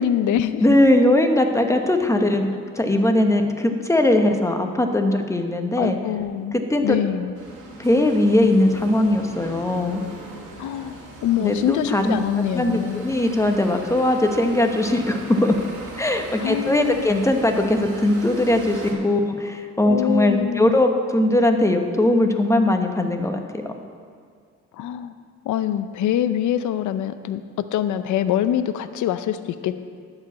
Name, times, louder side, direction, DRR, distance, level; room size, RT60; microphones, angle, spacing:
voice 1, 0.0-0.6 5.8-7.3 10.6-13.1 16.4-17.0 19.9-20.8 24.7-25.1 25.4-29.7, left 10 dB, 75° left, 11 dB, 0.6 m, -24 dB
voice 2, 0.6-2.5 2.7-6.0 6.5-7.0 7.8-10.0 11.4-12.2 12.5-15.6 16.0-23.6, left 1 dB, 10° left, 4 dB, 1.1 m, -20 dB
sound 1, 7.3-18.9, right 2 dB, 85° right, 2.1 m, -40 dB
11.5 x 5.0 x 8.2 m, 2.1 s
cardioid pair, 90°, 30 cm